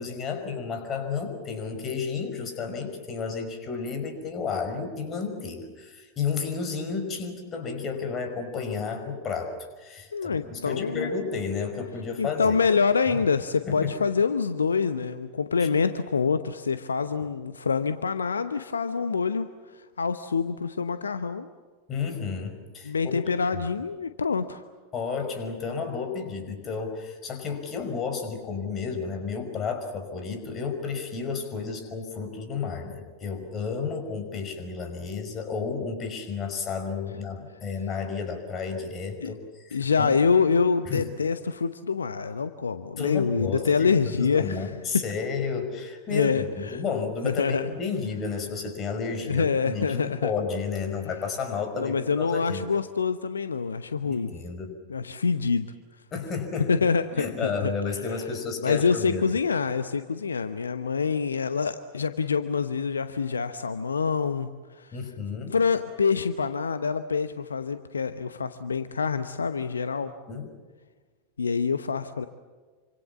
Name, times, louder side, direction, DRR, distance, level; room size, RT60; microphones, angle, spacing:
voice 1, 0.0-12.6 13.1-13.2 13.7-13.9 15.6-15.7 17.2-17.3 21.9-23.2 24.9-40.1 40.9-41.1 43.0-52.6 54.0-54.7 56.1-56.7 57.1-59.2 64.9-65.5 70.3-70.5, left 5 dB, 30° left, 6 dB, 5.5 m, -32 dB
voice 2, 10.1-11.1 12.2-19.5 19.7-21.5 22.8-24.6 39.2-39.3 39.7-45.0 46.1-46.8 47.2-47.6 49.1-50.3 51.8-54.3 54.9-55.7 56.7-57.7 58.1-58.2 58.6-64.5 64.8-65.0 65.5-70.1 71.4-72.2, left 5 dB, 75° left, 11 dB, 0.9 m, -26 dB
27.0 x 25.5 x 7.3 m, 1.4 s
figure-of-eight pair, 90°, 0 cm